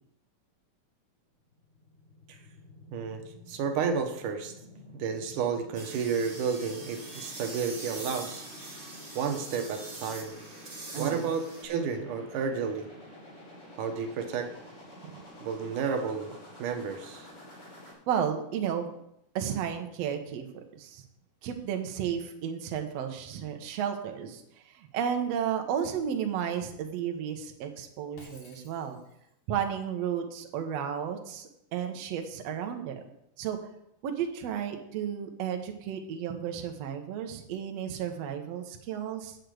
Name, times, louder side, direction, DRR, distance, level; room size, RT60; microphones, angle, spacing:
sound 1, 1.4-17.9, left 1 dB, 25° left, 2.8 m, -50 dB
voice 1, 3.5-4.5 4.9-8.5 9.2-10.3 11.0-12.9 13.8-14.5 15.4-17.3, right 6 dB, 85° right, 5 dB, 2.6 m, -31 dB
sound 2, 5.7-11.6, right 2 dB, 35° right, 0.8 m, -43 dB
voice 2, 10.9-11.3 15.0-15.2 18.1-18.9 19.4-21.0 21.4-29.0 29.5-33.0 33.4-33.6 34.0-39.4, right 8 dB, 65° right, 4 dB, 1.9 m, -33 dB
Shatter, 28.2-29.4, left 3 dB, 55° left, 3.2 m, -55 dB
7.4 x 6.8 x 7.9 m, 0.76 s
omnidirectional pair, 3.6 m